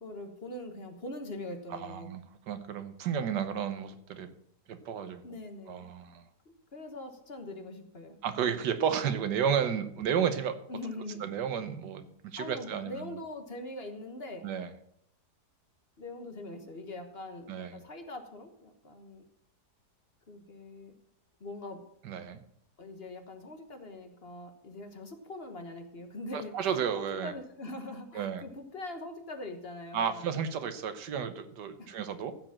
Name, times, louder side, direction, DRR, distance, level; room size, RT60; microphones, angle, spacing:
voice 1, 0.0-2.1 5.2-5.9 6.4-8.2 10.7-11.3 12.4-14.5 16.0-19.2 20.3-20.9 21.4-21.8 22.8-30.2 31.8-32.0, left 2 dB, 40° left, 6 dB, 1.3 m, -42 dB
voice 2, 1.7-2.2 2.5-4.3 4.7-5.2 5.7-6.3 8.2-10.6 11.2-13.1 14.4-14.7 17.5-17.8 22.0-22.4 26.3-27.3 28.1-28.4 29.9-32.3, right 7 dB, 90° right, 10 dB, 1.6 m, -32 dB
14.5 x 5.0 x 7.3 m, 0.72 s
omnidirectional pair, 1.8 m